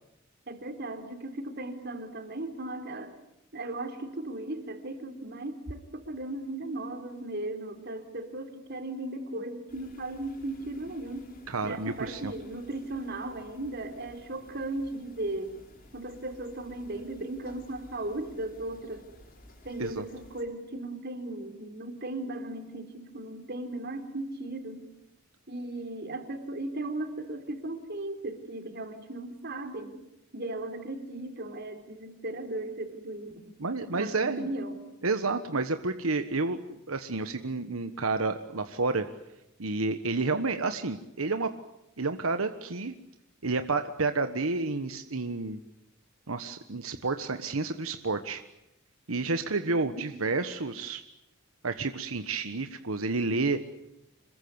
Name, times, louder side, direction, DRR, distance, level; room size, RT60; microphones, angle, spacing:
voice 1, 0.5-3.1 3.5-11.3 11.6-15.5 15.9-19.1 19.6-24.9 25.5-30.0 30.3-33.4 33.9-34.8, right 2 dB, 50° right, 7 dB, 3.8 m, -37 dB
sound 1, 9.7-20.4, left 1 dB, 45° left, 5.8 m, -55 dB
voice 2, 11.5-12.3 19.8-20.0 33.6-34.4 35.0-36.6 36.9-39.1 39.6-41.5 42.0-42.9 43.4-45.6 46.3-48.4 49.1-51.0 51.6-53.6, right 3 dB, 90° right, 8 dB, 1.4 m, -30 dB
27.0 x 22.0 x 9.6 m, 0.85 s
head